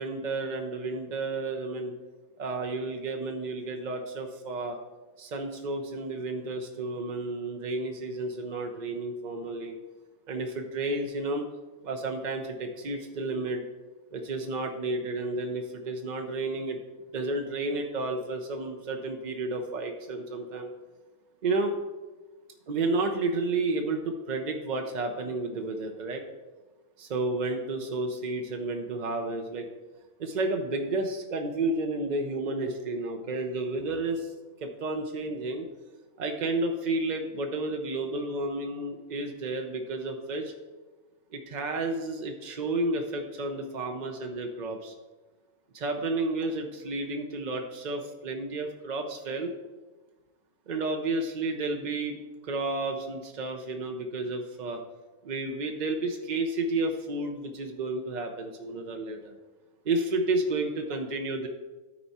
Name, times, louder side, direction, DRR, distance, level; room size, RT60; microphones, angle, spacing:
voice 1, 0.0-1.9 2.4-4.8 5.2-9.7 10.3-11.4 11.8-13.6 14.1-16.8 17.1-20.7 21.4-21.7 22.7-26.2 27.0-29.7 30.2-34.3 34.6-35.7 36.2-40.5 41.3-44.9 45.7-49.6 50.7-52.2 52.4-54.8 55.2-59.3 59.8-61.5, right 2 dB, 55° right, 4 dB, 0.5 m, -31 dB
12.5 x 4.5 x 4.1 m, 1.2 s
omnidirectional pair, 1.6 m